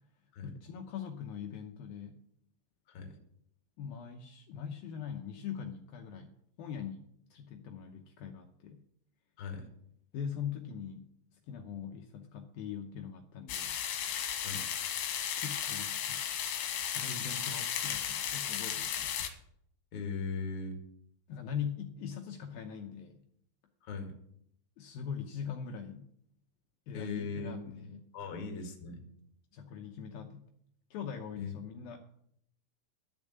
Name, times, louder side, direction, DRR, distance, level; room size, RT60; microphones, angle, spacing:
voice 1, 0.4-2.2 3.8-6.3 6.6-8.8 10.1-11.1 11.5-13.7 15.4-16.3 16.9-19.1 21.3-23.2 24.8-26.1 26.9-28.1 29.5-30.4 30.9-32.0, left 7 dB, 85° left, 4 dB, 2.1 m, -42 dB
voice 2, 2.9-3.2 9.4-9.7 14.4-14.7 19.9-20.8 23.8-24.1 26.9-29.0 31.4-31.5, left 4 dB, 45° left, 4 dB, 2.0 m, -39 dB
sound 1, 13.5-19.3, left 9 dB, 65° left, 2.8 m, -35 dB
12.5 x 7.2 x 8.4 m, 0.71 s
omnidirectional pair, 5.5 m